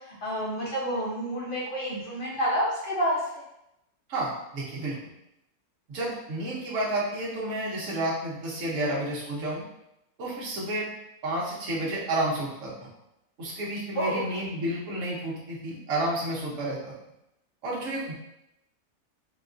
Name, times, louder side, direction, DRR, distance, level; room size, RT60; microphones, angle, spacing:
voice 1, 0.2-3.2 8.8-8.9 14.0-14.5, equal, 45° left, -6 dB, 0.7 m, -29 dB
voice 2, 4.1-5.0 5.9-9.6 10.2-10.9 11.2-12.9 13.4-16.9 17.6-18.1, right 1 dB, 60° right, -5 dB, 1.2 m, -31 dB
3.9 x 2.3 x 2.5 m, 0.83 s
omnidirectional pair, 1.6 m